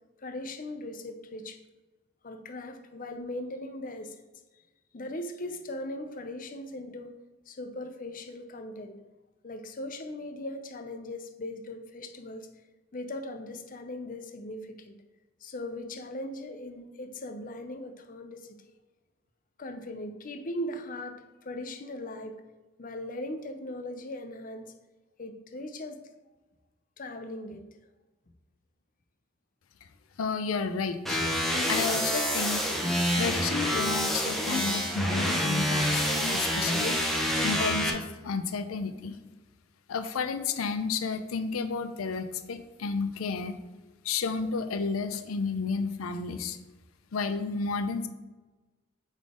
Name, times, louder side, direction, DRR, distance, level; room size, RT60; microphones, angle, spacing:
voice 1, 0.2-1.6 2.2-4.2 4.9-7.2 7.5-9.0 9.4-12.5 12.9-15.0 15.4-18.7 19.6-22.4 22.8-24.7 25.2-26.0 27.0-27.7, left 1 dB, 40° left, 6 dB, 0.6 m, -39 dB
voice 2, 30.2-31.2 31.7-32.6 33.1-37.0 37.4-39.2 39.9-43.6 44.0-46.6 47.1-48.1, left 4 dB, 90° left, 10 dB, 0.5 m, -31 dB
sound 1, 31.1-37.9, equal, ahead, 0.7 m, -27 dB
7.3 x 3.9 x 3.7 m, 1.2 s
head